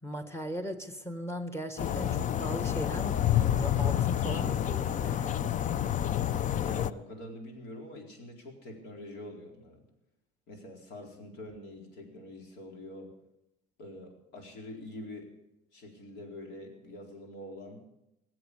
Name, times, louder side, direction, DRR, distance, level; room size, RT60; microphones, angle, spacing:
voice 1, 0.0-5.5, equal, 15° left, 7 dB, 1.7 m, -38 dB
sound 1, 1.8-6.9, left 11 dB, 50° left, 0.6 m, -28 dB
voice 2, 6.5-9.8 10.5-13.1 13.8-15.3 15.7-17.8, left 1 dB, 80° left, 2 dB, 4.1 m, -45 dB
19.5 x 7.7 x 8.5 m, 0.89 s
cardioid pair, 110°, 17 cm